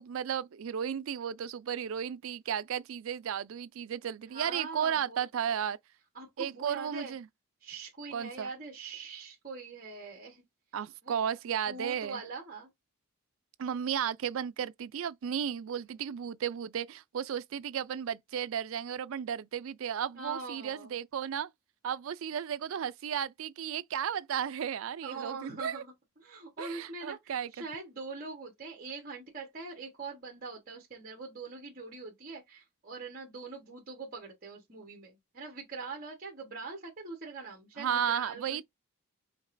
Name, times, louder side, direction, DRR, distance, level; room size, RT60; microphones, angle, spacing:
voice 1, 0.0-5.8 6.4-7.3 8.1-8.5 10.7-12.2 13.6-21.5 21.8-25.8 26.6-27.5 37.8-38.6, right 8 dB, 70° right, 0.4 m, -34 dB
voice 2, 4.3-5.3 6.1-7.1 7.6-10.4 11.0-11.2 11.6-12.7 20.1-20.9 25.0-38.6, right 4 dB, 40° right, 1.2 m, -43 dB
5.2 x 2.9 x 2.6 m
head